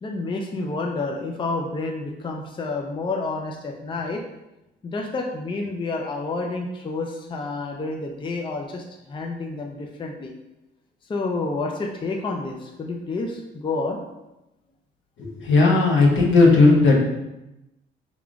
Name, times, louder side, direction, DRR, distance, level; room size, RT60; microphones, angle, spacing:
voice 1, 0.0-4.2 4.8-10.3 11.1-14.0, left 3 dB, 25° left, 2 dB, 0.5 m, -29 dB
voice 2, 15.2-17.0, left 3 dB, 75° left, -1 dB, 1.0 m, -16 dB
3.6 x 3.5 x 2.4 m, 0.95 s
cardioid pair, 90°, 20 cm